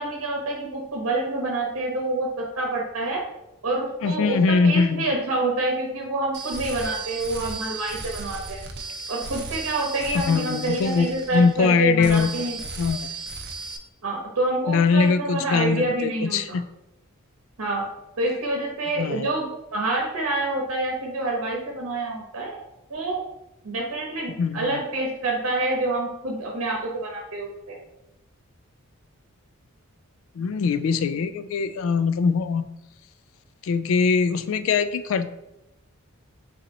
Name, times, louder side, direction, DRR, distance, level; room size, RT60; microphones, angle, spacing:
voice 1, 0.0-3.3 3.6-8.6 9.1-12.6 14.0-16.6 17.6-17.9 18.2-22.6 22.9-23.2 23.6-27.8, right 2 dB, 80° right, 0 dB, 0.9 m, -27 dB
voice 2, 4.0-5.1 10.1-12.3 12.8-13.1 14.7-16.6 19.0-19.3 24.3-24.8 30.4-32.7 33.6-35.3, left 5 dB, 60° left, 11 dB, 0.3 m, -22 dB
sound 1, 6.3-11.7 12.0-13.8, right 3 dB, 50° right, 0.5 m, -35 dB
3.9 x 2.8 x 4.1 m, 0.89 s
head